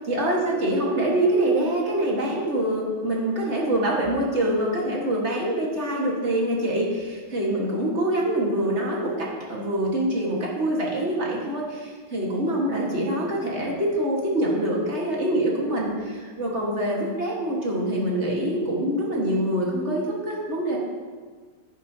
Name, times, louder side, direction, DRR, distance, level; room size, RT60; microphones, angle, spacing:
voice 1, 0.1-20.8, right 1 dB, 35° right, -3 dB, 1.7 m, -25 dB
10.5 x 10.0 x 2.8 m, 1.5 s
omnidirectional pair, 2.2 m